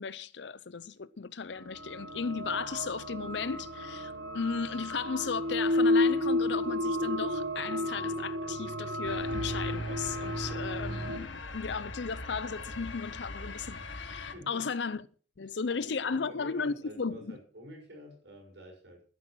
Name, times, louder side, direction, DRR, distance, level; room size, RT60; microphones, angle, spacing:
voice 1, 0.0-15.0 15.4-17.4, left 5 dB, 65° left, 0.6 m, -35 dB
sound 1, 1.7-11.2, left 1 dB, 80° right, 1.6 m, -31 dB
sound 2, 9.0-14.3, left 3 dB, 85° left, 2.0 m, -41 dB
voice 2, 14.3-14.7 15.7-19.0, right 1 dB, 65° right, 6.5 m, -49 dB
12.5 x 10.0 x 6.2 m
head